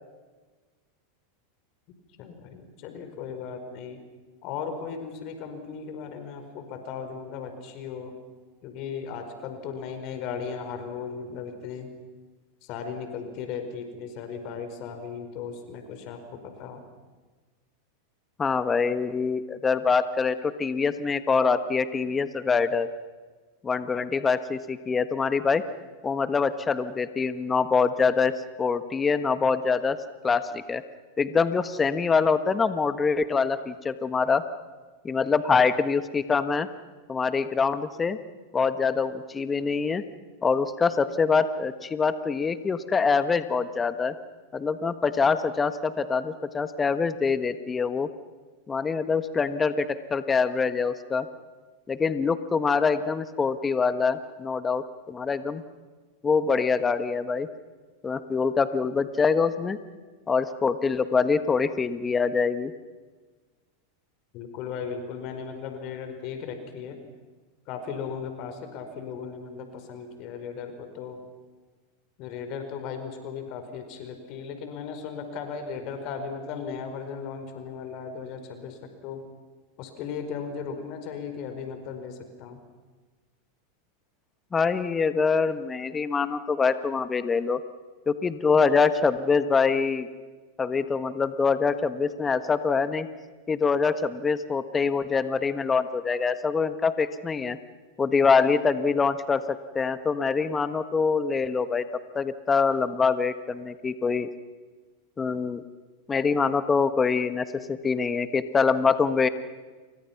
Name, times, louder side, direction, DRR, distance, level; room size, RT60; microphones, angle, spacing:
voice 1, 2.2-4.0 4.4-8.2 8.6-11.9 12.6-16.8 64.3-67.0 67.7-71.2 72.2-79.2 79.8-82.6, left 6 dB, 50° left, 7 dB, 4.7 m, -36 dB
voice 2, 18.4-22.9 23.6-25.6 26.0-28.3 28.6-30.0 30.2-30.8 31.2-34.4 35.0-36.7 37.1-38.2 38.5-40.0 40.4-44.1 44.5-48.1 48.7-51.3 51.9-55.6 56.2-57.5 58.0-59.8 60.3-62.7 84.5-87.6 88.1-90.1 90.6-93.1 93.5-97.6 98.0-101.8 102.1-104.3 105.2-105.6 106.1-109.3, left 5 dB, 20° left, 12 dB, 1.4 m, -24 dB
29.0 x 24.0 x 6.0 m, 1.4 s
hypercardioid pair, 100°, 0 cm